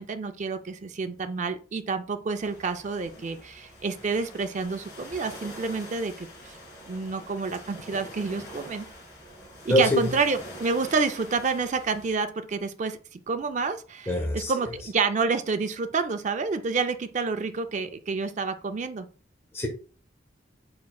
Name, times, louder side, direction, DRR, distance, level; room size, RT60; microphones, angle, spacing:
voice 1, 0.0-6.3 6.9-8.9 9.6-19.1, right 4 dB, 40° right, 0.4 m, -29 dB
sound 1, 2.4-12.2, equal, 55° left, 2.2 m, -45 dB
voice 2, 9.7-10.1 14.1-14.5 19.5-19.7, equal, 15° left, 0.6 m, -23 dB
4.4 x 4.3 x 2.3 m
head